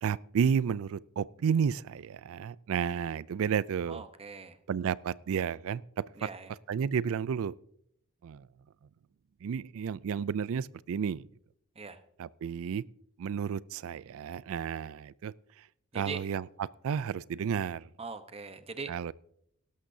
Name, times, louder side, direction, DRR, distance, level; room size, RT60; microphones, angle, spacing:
voice 1, 0.0-4.1 4.7-6.3 6.7-7.5 8.2-8.5 9.4-11.3 12.2-12.8 13.2-15.7 15.9-17.9 18.9-19.1, right 7 dB, 65° right, 0.4 m, -32 dB
voice 2, 3.9-4.6 6.2-6.5 11.8-12.0 15.9-16.2 18.0-19.1, right 4 dB, 25° right, 0.9 m, -41 dB
17.5 x 13.0 x 2.7 m
head